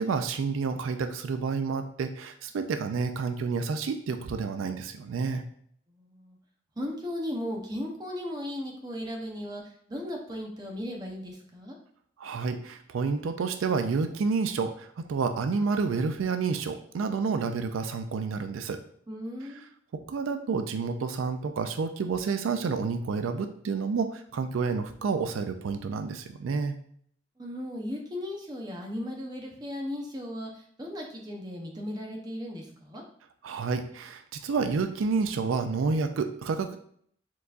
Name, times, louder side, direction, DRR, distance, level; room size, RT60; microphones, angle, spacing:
voice 1, 0.0-5.4 12.2-18.8 19.9-26.8 33.4-36.8, right 4 dB, 80° right, 8 dB, 0.4 m, -29 dB
voice 2, 5.9-6.4 6.8-9.6 9.9-11.8 19.1-19.6 27.4-33.0, left 1 dB, 20° right, 0 dB, 0.7 m, -36 dB
4.5 x 3.9 x 2.4 m, 0.63 s
head